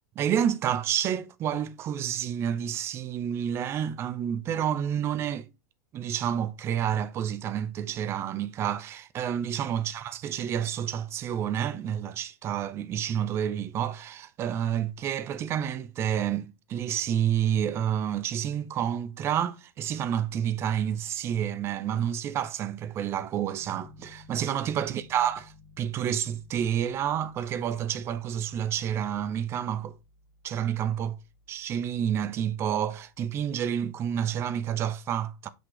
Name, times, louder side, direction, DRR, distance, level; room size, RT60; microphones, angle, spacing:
voice 1, 0.2-5.5 5.9-25.4 25.8-30.0 30.4-31.2 31.5-35.5, right 9 dB, 30° right, 0.5 m, -29 dB
Piano, 23.6-33.8, left 3 dB, 55° left, 3.6 m, -57 dB
5.9 x 5.0 x 3.2 m
figure-of-eight pair, 90°, 9 cm